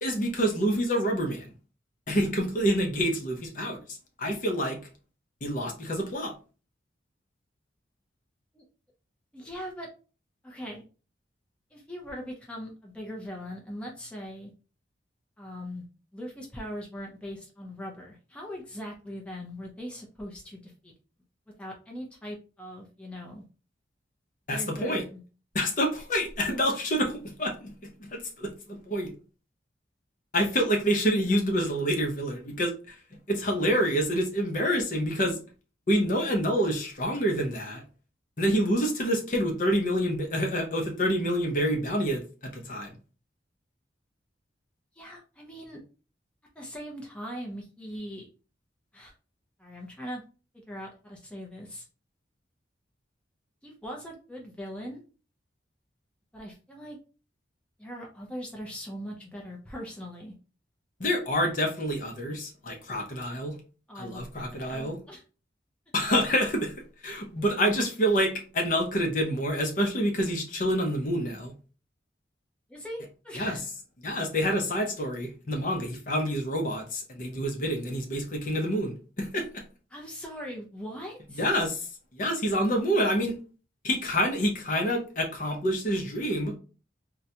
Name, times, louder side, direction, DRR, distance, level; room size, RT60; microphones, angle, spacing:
voice 1, 0.0-1.5 2.1-3.8 4.2-4.8 5.4-6.3 24.5-25.0 25.5-29.1 30.3-32.9 33.3-35.4 35.9-37.8 38.4-42.9 61.0-63.6 64.0-65.0 65.9-66.7 67.0-71.5 73.3-73.6 74.0-79.6 81.4-81.9 82.1-83.4 83.8-86.5, equal, 45° left, 0.7 m, -27 dB
voice 2, 9.3-9.9 10.4-10.8 11.7-14.5 15.4-15.8 16.1-20.9 21.6-23.4 24.5-25.2 45.0-45.8 46.6-48.2 48.9-49.1 49.6-50.2 50.5-51.8 53.6-55.0 56.3-57.0 57.8-60.3 63.9-65.2 72.7-73.6 79.9-81.5, equal, 5° left, 0.6 m, -40 dB
3.8 x 2.2 x 2.8 m
head